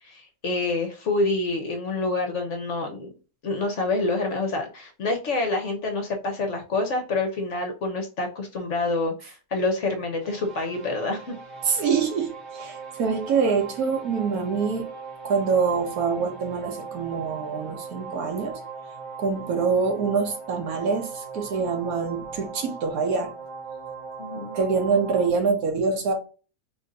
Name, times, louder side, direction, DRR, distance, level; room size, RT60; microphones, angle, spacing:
voice 1, 0.0-3.1 3.4-11.3 24.2-24.5, left 3 dB, 60° left, 1.0 m, -27 dB
sound 1, 10.2-25.3, right 5 dB, 50° right, 2.2 m, -39 dB
voice 2, 11.7-14.9 15.2-18.6 19.2-23.3 24.5-26.1, right 5 dB, 90° right, 1.4 m, -25 dB
3.5 x 2.6 x 3.9 m
omnidirectional pair, 1.5 m